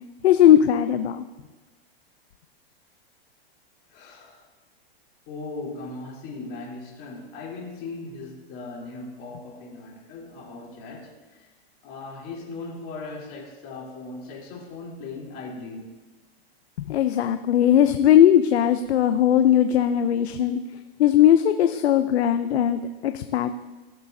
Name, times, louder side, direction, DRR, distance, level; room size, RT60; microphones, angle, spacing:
voice 1, 0.2-1.2 16.9-20.6 21.0-23.5, left 10 dB, 90° left, 9 dB, 0.6 m, -19 dB
voice 2, 3.9-4.4 5.3-11.5 11.8-15.9, left 3 dB, 40° left, -5 dB, 3.4 m, -38 dB
16.0 x 6.9 x 2.7 m, 1.2 s
supercardioid pair, 145°, 31 cm